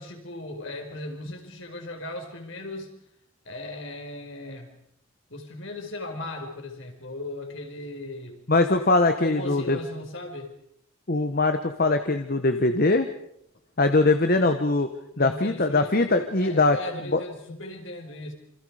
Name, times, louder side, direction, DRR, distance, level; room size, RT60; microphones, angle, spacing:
voice 1, 0.0-2.9 3.4-4.7 5.3-8.4 9.2-10.5 15.1-16.0 16.4-18.3, left 1 dB, 60° left, 4 dB, 4.9 m, -37 dB
voice 2, 8.5-9.8 11.1-13.1 13.8-14.9 15.2-16.8 17.1-17.2, left 2 dB, 45° left, 8 dB, 1.2 m, -21 dB
27.5 x 27.0 x 5.0 m, 0.73 s
head